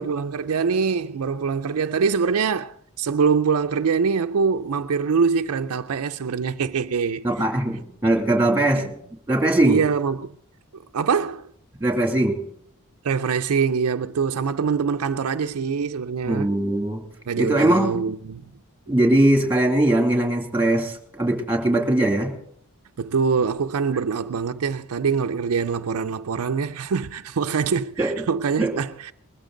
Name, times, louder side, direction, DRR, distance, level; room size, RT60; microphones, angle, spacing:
voice 1, 0.0-7.3 8.7-8.8 9.6-10.3 10.9-11.5 13.0-16.5 17.3-18.4 23.0-29.1, right 5 dB, 75° right, 0.5 m, -24 dB
voice 2, 7.2-8.9 9.3-9.8 11.8-12.4 16.3-17.0 17.4-18.0 18.9-22.3 28.0-28.1 28.6-28.7, right 1 dB, 10° right, 2.4 m, -20 dB
20.5 x 14.0 x 3.8 m
head